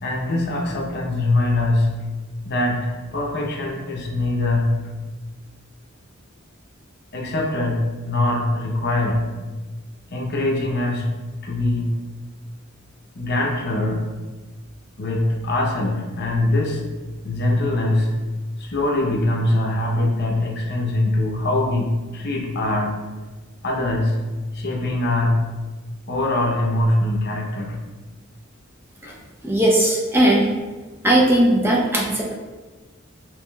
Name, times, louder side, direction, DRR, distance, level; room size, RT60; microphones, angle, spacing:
voice 1, 0.0-1.9 2.4-4.8 7.1-9.2 10.1-11.1 11.4-11.9 13.1-14.1 15.0-16.8 17.2-18.1 18.6-23.0 23.6-24.2 24.5-25.4 26.1-27.8 29.1-29.2, left 2 dB, 55° left, -1 dB, 0.7 m, -22 dB
voice 2, 29.4-30.5 31.0-32.4, right 1 dB, 10° right, -2 dB, 0.4 m, -18 dB
4.7 x 3.0 x 2.2 m, 1.3 s
head